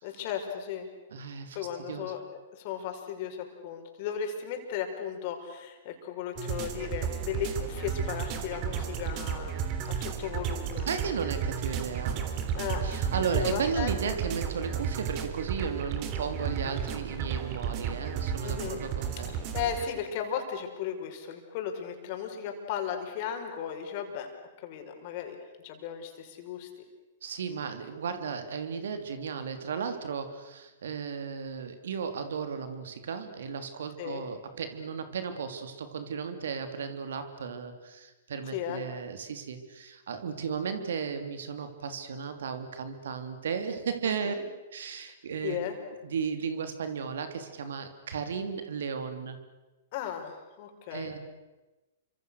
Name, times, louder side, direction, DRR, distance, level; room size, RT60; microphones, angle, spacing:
voice 1, 0.0-0.9 1.5-2.2 2.5-9.6 9.9-10.9 12.5-13.0 13.3-14.0 18.4-18.8 19.2-24.3 24.6-25.4 25.6-26.7 34.0-34.2 38.5-38.8 44.0-44.4 45.4-45.8 49.9-51.2, left 8 dB, 50° left, 4 dB, 5.4 m, -36 dB
voice 2, 1.1-2.2 10.8-12.3 12.8-19.3 27.2-44.3 44.7-45.6 46.0-49.4 50.9-51.2, right 6 dB, 70° right, 8 dB, 3.1 m, -35 dB
sound 1, 6.4-19.9, right 7 dB, 40° right, 3.5 m, -33 dB
29.0 x 25.0 x 6.6 m, 1.1 s
hypercardioid pair, 115°, 0 cm